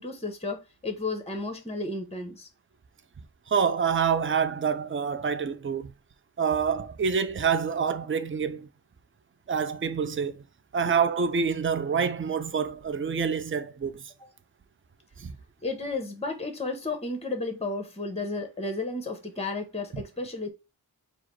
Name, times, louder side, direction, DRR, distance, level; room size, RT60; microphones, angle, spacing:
voice 1, 0.0-2.5 10.8-10.9 14.2-14.3 15.6-20.5, left 3 dB, 15° left, 0.9 m, -33 dB
voice 2, 3.5-5.9 6.4-8.7 9.5-10.4 10.7-14.0 15.2-15.3, right 6 dB, 35° right, 0.5 m, -27 dB
4.8 x 2.0 x 4.4 m
wide cardioid pair, 55°, 39 cm